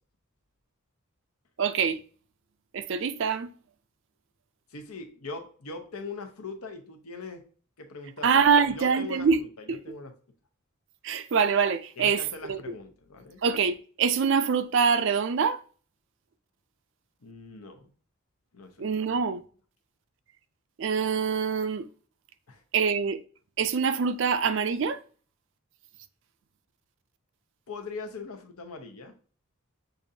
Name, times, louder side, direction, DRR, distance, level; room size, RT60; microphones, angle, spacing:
voice 1, 1.6-2.0 2.7-3.5 8.2-9.4 9.7-9.8 11.0-12.2 12.5-12.6 13.4-15.6 18.8-19.4 20.8-21.9 22.7-23.2 23.6-25.0, right 6 dB, 55° right, 0.4 m, -24 dB
voice 2, 4.7-7.4 7.8-10.1 12.0-13.4 17.2-17.9 18.5-18.9 22.5-22.6 27.7-29.2, left 3 dB, 85° left, 0.9 m, -41 dB
6.8 x 2.6 x 2.7 m
head